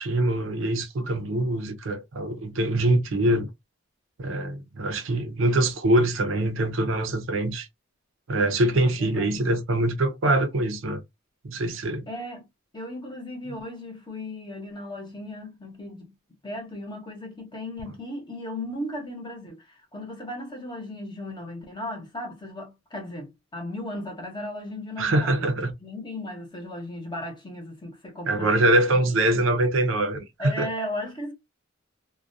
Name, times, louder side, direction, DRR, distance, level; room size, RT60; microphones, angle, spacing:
voice 1, 0.1-3.5 4.2-7.7 8.3-11.0 11.4-12.0 25.0-25.7 28.3-30.7, right 1 dB, 70° right, 0.6 m, -24 dB
voice 2, 8.8-9.4 12.1-12.5 12.7-16.1 16.4-28.5 28.9-29.1 30.4-31.3, left 1 dB, 25° left, 0.8 m, -36 dB
2.3 x 2.2 x 2.6 m
head